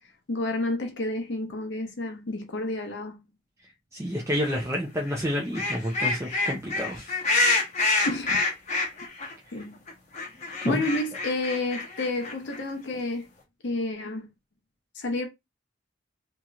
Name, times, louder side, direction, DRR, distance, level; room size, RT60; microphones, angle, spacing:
voice 1, 0.3-3.3 8.0-8.4 9.5-9.8 10.6-13.3 13.6-14.3 14.9-15.3, left 2 dB, 65° left, 0.8 m, -30 dB
voice 2, 3.9-7.2 10.6-10.8, equal, 15° right, 0.5 m, -29 dB
sound 1, 4.4-4.6 5.1-9.3 9.6-9.7 9.9-12.7, left 3 dB, 40° left, 1.0 m, -27 dB
3.0 x 2.8 x 2.4 m
head